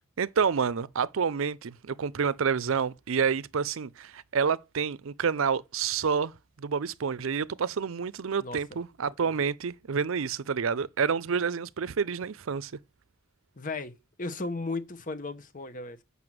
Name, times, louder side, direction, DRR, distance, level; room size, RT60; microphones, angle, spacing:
voice 1, 0.2-6.3 6.6-12.7, right 6 dB, 75° right, 0.5 m, -28 dB
voice 2, 13.6-13.9 14.2-16.0, left 3 dB, 40° left, 1.1 m, -35 dB
7.9 x 5.6 x 7.5 m
head